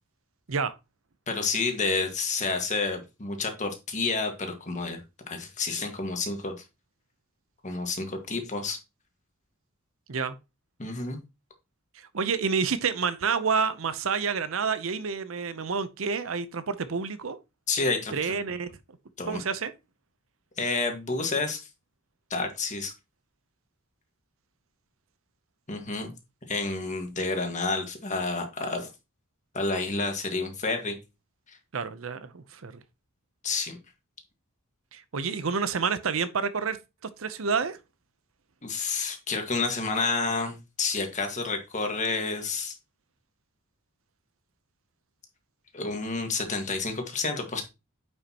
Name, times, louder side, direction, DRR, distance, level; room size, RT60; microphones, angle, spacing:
voice 1, 1.3-4.3 4.6-5.0 5.3-6.5 7.6-8.8 10.8-11.2 17.7-18.1 19.2-19.4 20.6-21.7 22.3-22.9 25.7-26.1 26.5-28.9 29.5-31.0 33.4-33.8 38.6-42.7 45.7-47.6, left 3 dB, 35° left, 1.6 m, -29 dB
voice 2, 12.0-17.4 18.1-18.7 19.3-19.7 31.7-32.7 34.9-36.8 37.2-37.8, right 5 dB, 70° right, 0.7 m, -29 dB
9.4 x 5.3 x 2.9 m
head